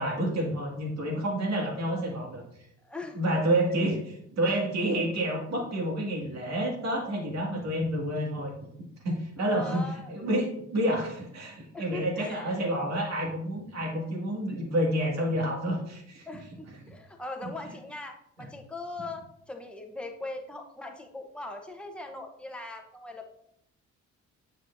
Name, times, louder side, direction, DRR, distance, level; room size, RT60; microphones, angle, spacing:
voice 1, 0.0-2.4 3.2-8.5 9.0-9.8 10.1-16.3 18.4-18.5, right 1 dB, 60° right, -1 dB, 2.2 m, -29 dB
voice 2, 2.8-3.2 4.4-4.6 9.4-10.1 11.7-12.5 13.9-14.1 16.3-23.3, left 2 dB, 5° left, 3 dB, 0.9 m, -40 dB
7.4 x 6.4 x 2.7 m, 0.74 s
cardioid pair, 90°, 30 cm